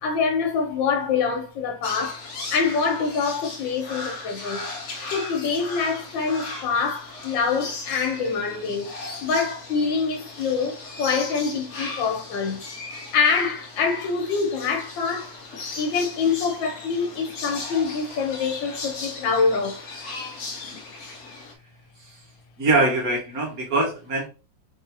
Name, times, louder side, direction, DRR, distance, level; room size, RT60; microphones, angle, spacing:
voice 1, 0.0-2.2 2.5-4.7 5.1-8.9 9.2-12.6 13.1-15.4 15.8-19.8, left 5 dB, 85° left, 1.7 m, -25 dB
sound 1, 1.8-21.5, left 3 dB, 55° left, 0.8 m, -37 dB
voice 2, 22.6-24.3, right 2 dB, 55° right, 1.6 m, -23 dB
3.8 x 3.7 x 2.7 m
omnidirectional pair, 2.0 m